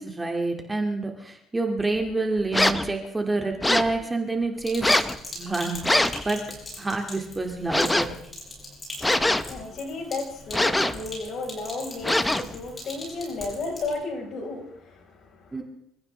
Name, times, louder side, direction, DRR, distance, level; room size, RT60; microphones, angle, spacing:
voice 1, 0.0-4.9 5.3-6.4 6.8-8.2 15.5-15.6, right 2 dB, 15° right, 3 dB, 2.1 m, -28 dB
sound 1, 2.5-2.9 3.6-4.0 4.8-5.2 5.8-6.2 7.7-8.2 9.0-9.6 10.5-11.1 12.0-12.6, left 1 dB, 10° left, 0.8 m, -23 dB
Sink (filling or washing), 4.6-13.9, left 1 dB, 25° left, 7.9 m, -41 dB
voice 2, 9.1-15.6, left 3 dB, 50° left, 2 dB, 4.7 m, -34 dB
27.0 x 14.5 x 3.3 m, 0.75 s
cardioid pair, 120°, 0 cm